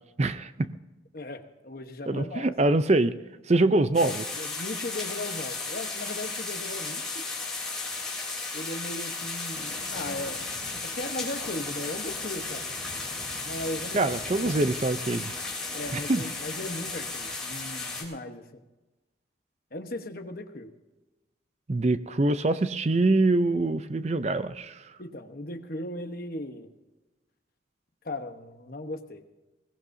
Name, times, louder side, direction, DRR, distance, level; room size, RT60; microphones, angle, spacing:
voice 1, 0.2-0.7 2.1-3.1 3.5-4.1 13.9-15.3 16.1-16.2 21.7-24.8, right 2 dB, 35° right, 12 dB, 0.5 m, -24 dB
voice 2, 1.1-2.5 4.0-7.2 8.5-10.4 10.8-12.6 13.4-14.6 15.7-18.6 19.7-20.7 25.0-26.7 28.0-29.2, left 1 dB, 50° left, 6 dB, 1.1 m, -37 dB
sound 1, 3.9-18.0, left 3 dB, 5° left, 3.2 m, -35 dB
21.5 x 17.5 x 2.7 m, 1.1 s
head